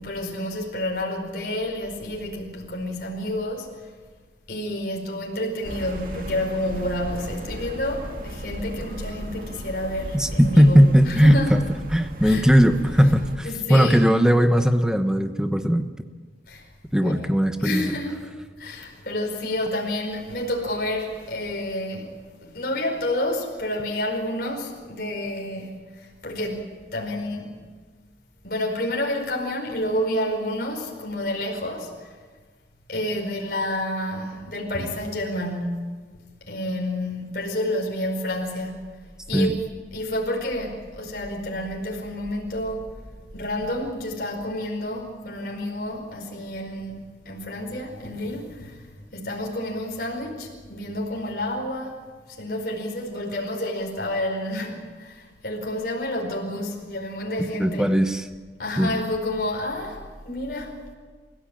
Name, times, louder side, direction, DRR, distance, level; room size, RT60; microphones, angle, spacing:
voice 1, 0.0-3.9 4.5-11.5 12.2-12.5 13.4-14.1 16.5-16.7 17.0-17.2 17.6-18.2 18.6-27.6 28.4-32.1 32.9-36.0 36.5-38.8 39.3-39.6 39.9-42.9 43.3-47.0 47.2-52.0 52.4-57.9 58.6-60.8, left 1 dB, 55° left, 5.0 m, -29 dB
sound 1, 5.6-13.4, equal, 50° right, 2.6 m, -35 dB
voice 2, 10.1-15.9 16.9-17.8 39.3-39.5 57.4-58.3 58.8-58.9, equal, 5° right, 1.1 m, -18 dB
29.0 x 16.0 x 8.9 m
head